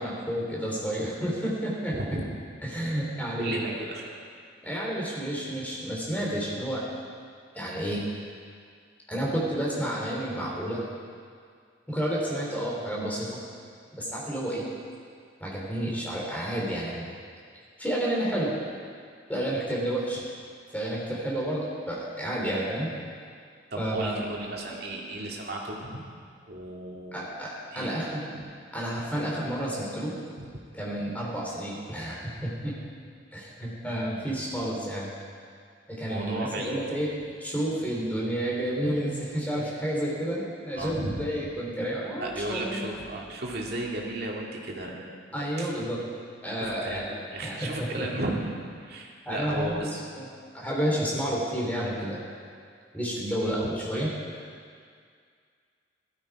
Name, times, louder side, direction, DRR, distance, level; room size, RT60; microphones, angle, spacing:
voice 1, 0.0-2.0 2.6-3.6 4.6-6.8 7.5-8.0 9.1-10.8 11.9-13.4 13.9-14.6 15.4-17.1 17.8-18.5 19.3-20.2 20.7-22.9 23.8-24.2 27.1-28.3 28.7-30.1 30.7-32.7 33.3-35.1 35.9-42.9 45.3-46.0 46.4-47.1 47.4-48.2 49.2-50.3 50.5-52.2 52.9-54.1, right 1 dB, 10° left, -5 dB, 3.3 m, -30 dB
voice 2, 3.4-4.1 23.7-26.1 26.5-27.3 27.7-28.4 30.4-30.5 36.1-36.7 38.8-38.9 40.8-41.3 42.2-45.0 45.3-45.7 46.6-47.1 47.3-48.4 48.8-49.9 53.4-53.6, right 1 dB, 55° right, -2 dB, 2.2 m, -35 dB
15.5 x 12.5 x 4.7 m, 2.1 s
head